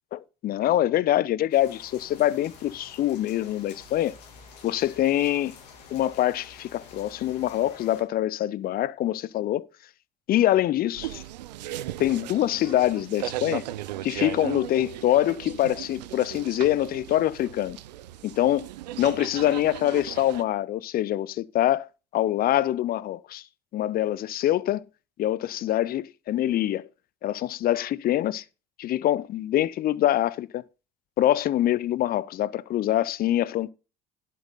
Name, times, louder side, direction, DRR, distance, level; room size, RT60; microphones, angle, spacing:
voice 1, 0.1-4.1 4.6-5.5 5.9-9.7 10.3-11.2 12.0-13.6 14.0-17.8 18.2-18.7 19.0-21.9 22.1-23.4 23.7-24.8 25.2-26.9 27.2-28.4 28.8-30.6 31.2-33.7, left 13 dB, 45° left, 0.6 m, -24 dB
sound 1, 1.5-8.0, left 5 dB, 75° left, 2.7 m, -49 dB
sound 2, 10.9-20.4, right 14 dB, 80° right, 0.6 m, -37 dB
11.0 x 7.6 x 4.0 m
hypercardioid pair, 65°, 21 cm